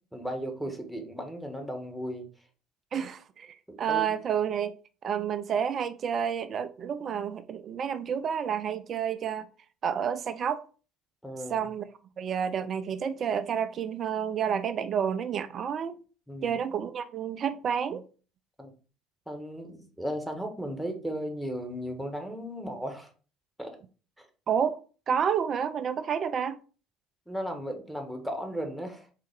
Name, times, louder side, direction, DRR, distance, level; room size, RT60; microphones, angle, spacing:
voice 1, 0.1-2.3 3.7-4.1 11.2-11.7 16.3-16.6 18.6-18.7 19.3-23.1 23.6-23.8 24.2-24.3 27.3-29.1, equal, ahead, 1.3 m, -36 dB
voice 2, 2.9-4.7 5.0-9.5 9.8-10.6 11.5-11.9 12.2-16.0 16.4-18.0 24.5-24.8 25.1-26.6, right 8 dB, 40° right, 0.4 m, -30 dB
4.0 x 3.7 x 3.5 m
figure-of-eight pair, 60°, 0 cm